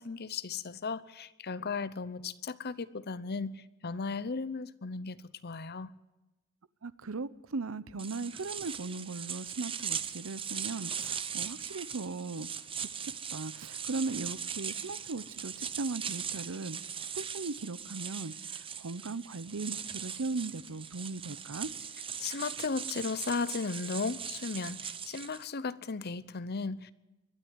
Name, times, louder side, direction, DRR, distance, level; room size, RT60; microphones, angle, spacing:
voice 1, 0.0-5.9 22.2-26.9, left 4 dB, 50° left, 0.8 m, -36 dB
voice 2, 6.8-12.5 12.8-12.9 13.3-16.8 17.1-21.7, right 3 dB, 75° right, 0.8 m, -38 dB
sound 1, 8.0-25.4, right 7 dB, 25° right, 0.9 m, -40 dB
21.5 x 12.5 x 9.8 m
head